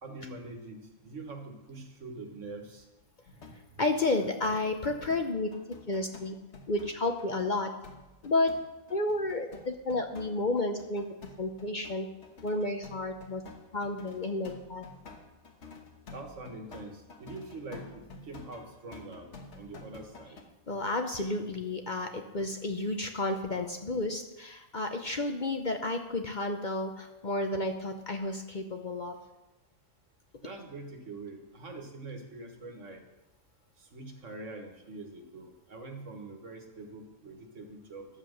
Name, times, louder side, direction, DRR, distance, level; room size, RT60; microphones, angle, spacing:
voice 1, 0.0-2.9 3.5-3.8 16.1-20.4 30.4-33.0 33.8-38.1, right 2 dB, 70° right, 4 dB, 1.8 m, -44 dB
sound 1, 3.3-20.4, left 3 dB, 65° left, 1.5 m, -50 dB
voice 2, 3.8-5.5 5.9-6.4 6.7-7.7 8.2-8.5 8.9-11.0 11.4-12.1 12.4-13.4 13.7-14.8 20.7-29.1, left 2 dB, 45° left, 5 dB, 0.8 m, -31 dB
11.0 x 7.4 x 6.5 m, 1.0 s
omnidirectional pair, 1.3 m